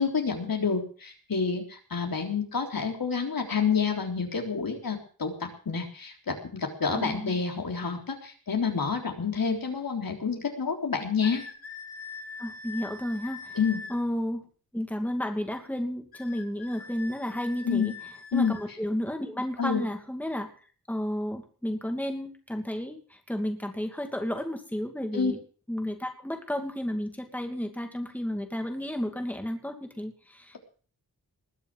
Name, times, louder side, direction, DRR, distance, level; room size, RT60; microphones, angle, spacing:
voice 1, 0.0-11.4 13.6-13.8 17.6-17.9 18.3-18.6 19.6-19.9 25.1-25.3, left 5 dB, 70° left, 3 dB, 3.7 m, -28 dB
voice 2, 6.9-7.4 12.4-13.6 13.9-14.4 14.7-17.9 18.3-20.5 20.9-25.4 25.7-30.6, equal, 5° left, 4 dB, 2.6 m, -32 dB
sound 1, 11.2-14.0 16.1-18.7, left 4 dB, 85° left, 6.6 m, -43 dB
20.5 x 7.0 x 7.6 m, 0.41 s
wide cardioid pair, 115°, 36 cm